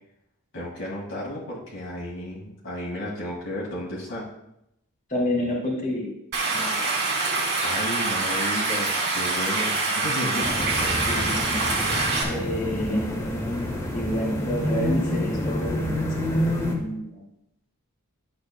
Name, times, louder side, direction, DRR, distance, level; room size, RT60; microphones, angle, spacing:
voice 1, 0.5-4.3 7.6-10.5, left 1 dB, 60° left, -5 dB, 1.9 m, -33 dB
voice 2, 5.1-6.1 6.4-6.8 11.1-11.6 12.2-13.0 13.9-17.2, left 1 dB, 35° left, -2 dB, 2.4 m, -29 dB
Stream, 6.3-12.2, right 3 dB, 55° right, 2.2 m, -25 dB
sound 1, 10.4-16.7, left 1 dB, 15° left, 1.3 m, -27 dB
11.0 x 7.5 x 2.2 m, 0.81 s
head